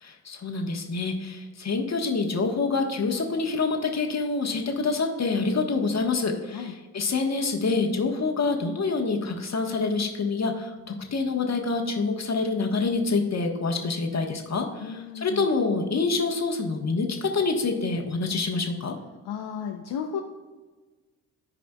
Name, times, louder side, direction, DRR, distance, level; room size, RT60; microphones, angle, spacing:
voice 1, 0.0-18.9, left 4 dB, 35° left, 3 dB, 1.4 m, -26 dB
voice 2, 14.8-15.5 19.2-20.2, left 7 dB, 55° left, 2 dB, 0.8 m, -34 dB
14.5 x 5.0 x 2.3 m, 1.3 s
hypercardioid pair, 40°, 48 cm